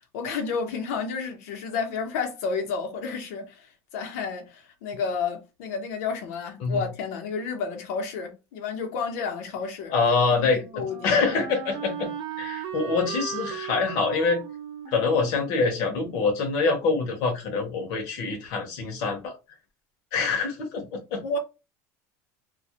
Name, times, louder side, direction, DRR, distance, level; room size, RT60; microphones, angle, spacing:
voice 1, 0.1-10.0 10.5-11.2 21.2-21.4, left 5 dB, 90° left, 0.8 m, -31 dB
voice 2, 9.9-10.6 11.0-12.1 12.4-14.4 14.9-19.3 20.1-21.2, left 4 dB, 55° left, 0.7 m, -25 dB
Wind instrument woodwind instrument, 9.9-16.8, right 8 dB, 50° right, 0.6 m, -38 dB
2.3 x 2.0 x 2.7 m
cardioid pair, 165°, 8 cm